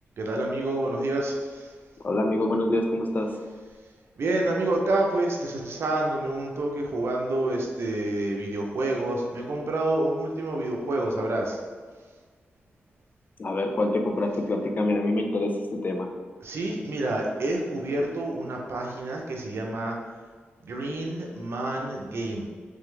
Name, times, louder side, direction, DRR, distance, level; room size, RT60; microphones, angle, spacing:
voice 1, 0.2-1.7 4.2-11.6 16.4-20.0 20.6-22.4, right 2 dB, 75° right, 0 dB, 0.7 m, -28 dB
voice 2, 2.0-3.4 13.4-16.1, left 2 dB, 45° left, 4 dB, 0.5 m, -26 dB
3.6 x 3.4 x 3.3 m, 1.5 s
wide cardioid pair, 90°, 4 cm